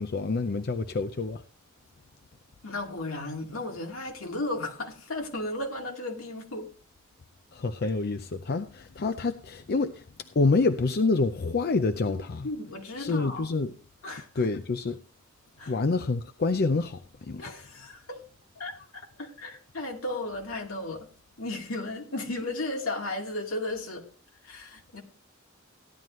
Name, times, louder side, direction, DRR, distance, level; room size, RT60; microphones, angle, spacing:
voice 1, 0.0-1.4 7.5-10.0 10.4-12.5 13.0-13.7 14.4-15.0 15.7-17.5, left 3 dB, 50° left, 0.5 m, -27 dB
voice 2, 2.6-6.7 12.1-12.2 12.4-13.5 14.0-14.5 15.6-15.8 17.4-18.2 18.6-21.1 21.4-24.1 24.4-25.0, left 2 dB, 80° left, 2.2 m, -35 dB
15.0 x 11.0 x 3.1 m
head